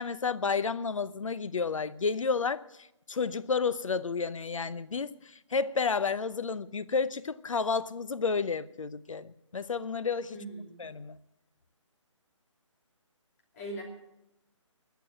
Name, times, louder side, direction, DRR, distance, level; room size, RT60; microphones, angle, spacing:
voice 1, 0.0-10.4 10.8-11.2, left 5 dB, 80° left, 0.8 m, -31 dB
voice 2, 10.3-10.8 13.5-13.8, right 1 dB, 30° left, 2.8 m, -40 dB
20.5 x 6.9 x 7.8 m
hypercardioid pair, 160°, 16 cm